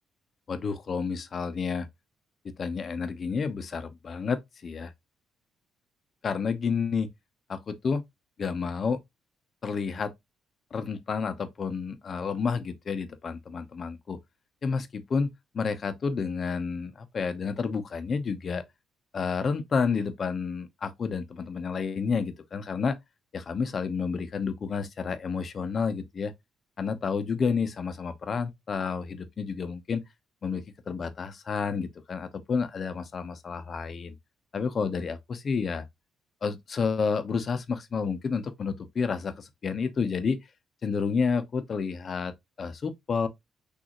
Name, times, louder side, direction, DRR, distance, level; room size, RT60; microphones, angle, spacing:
voice 1, 0.5-1.9 2.4-4.9 6.2-7.1 7.5-8.0 8.4-9.0 9.6-10.1 10.7-14.2 14.6-18.6 19.1-23.0 23.3-26.3 26.8-30.0 30.4-34.1 34.5-35.9 36.4-40.4 40.8-42.3 42.6-43.3, left 5 dB, 45° left, 0.9 m, -30 dB
6.4 x 2.7 x 3.0 m
cardioid pair, 90°, 0 cm